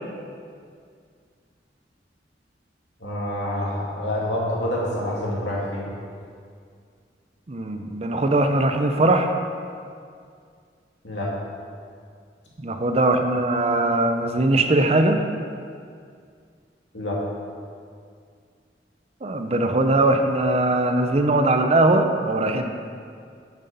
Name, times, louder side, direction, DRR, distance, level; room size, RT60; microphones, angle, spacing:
voice 1, 3.0-5.9 11.0-11.3 16.9-17.2, left 1 dB, 80° left, -5 dB, 2.6 m, -27 dB
voice 2, 7.5-9.3 12.6-15.2 19.2-22.6, right 2 dB, 35° right, 6 dB, 0.6 m, -20 dB
9.1 x 6.2 x 5.5 m, 2.2 s
head